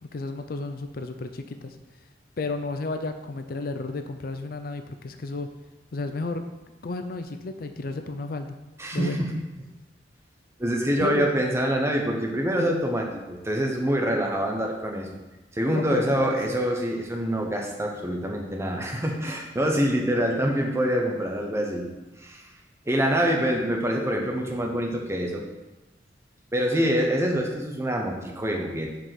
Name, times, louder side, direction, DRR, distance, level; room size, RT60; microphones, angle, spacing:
voice 1, 0.0-1.8 2.4-5.5 5.9-6.4 6.8-8.6 8.9-9.3 11.0-11.3 15.7-16.4, left 3 dB, 55° left, 7 dB, 0.5 m, -32 dB
voice 2, 8.8-9.3 10.6-15.1 15.5-21.9 22.2-22.5 22.9-25.4 26.5-29.0, equal, 15° right, 1 dB, 0.9 m, -25 dB
5.2 x 4.8 x 5.7 m, 1.1 s
head